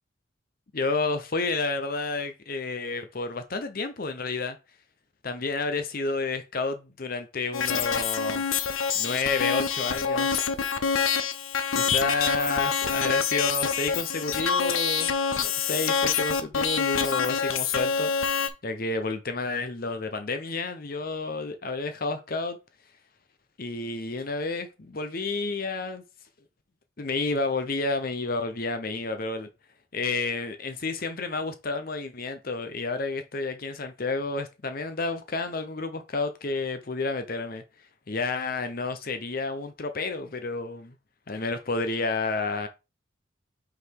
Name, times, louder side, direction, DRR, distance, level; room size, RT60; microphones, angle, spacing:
voice 1, 0.7-4.6 5.2-8.4 8.9-10.4 11.7-18.1 18.6-22.6 23.6-26.0 27.0-29.5 29.9-37.6 38.1-40.9 41.3-42.7, left 3 dB, 45° left, 0.7 m, -30 dB
sound 1, 7.5-18.5, left 6 dB, 85° left, 0.8 m, -26 dB
5.7 x 4.0 x 4.6 m
head